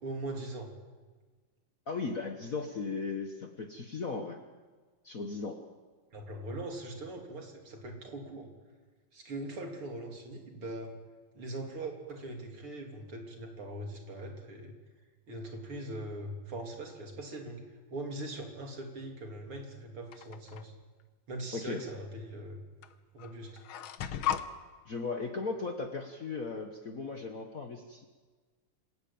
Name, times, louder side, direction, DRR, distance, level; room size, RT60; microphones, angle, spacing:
voice 1, 0.0-0.7 6.1-8.5 9.1-10.9 11.3-14.7 15.3-17.6 17.9-20.7 21.3-22.6 23.1-23.6, right 1 dB, 80° right, 2 dB, 4.2 m, -41 dB
voice 2, 1.9-4.4 5.0-5.6 21.5-21.8 24.9-28.0, left 4 dB, 45° left, 4 dB, 1.6 m, -37 dB
sound 1, 20.1-20.6 21.8-21.9 22.8-22.9 23.2-24.5, left 10 dB, 75° left, 1.8 m, -35 dB
27.0 x 15.0 x 8.9 m, 1.4 s
omnidirectional pair, 2.3 m